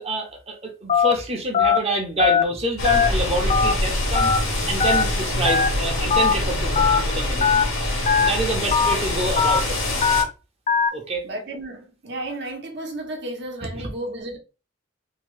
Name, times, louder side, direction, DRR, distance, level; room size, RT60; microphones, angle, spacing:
voice 1, 0.0-4.3 4.7-7.6 8.2-9.8 10.9-11.2 13.7-13.8, right 2 dB, 30° right, 0.7 m, -27 dB
Telephone, 0.9-1.1 1.5-1.8 2.2-2.4 2.8-3.1 3.5-3.7 4.1-4.4 4.8-5.0 5.5-5.7 6.1-6.3 6.8-7.0 7.4-7.6 8.1-8.3 8.7-8.9 9.4-9.6 10.0-10.2 10.7-10.9, left 6 dB, 30° left, 0.3 m, -19 dB
sound 1, 2.8-10.2, left 1 dB, 90° left, 1.1 m, -25 dB
voice 2, 11.2-14.4, right 1 dB, 55° right, 0.8 m, -33 dB
2.8 x 2.6 x 3.1 m
head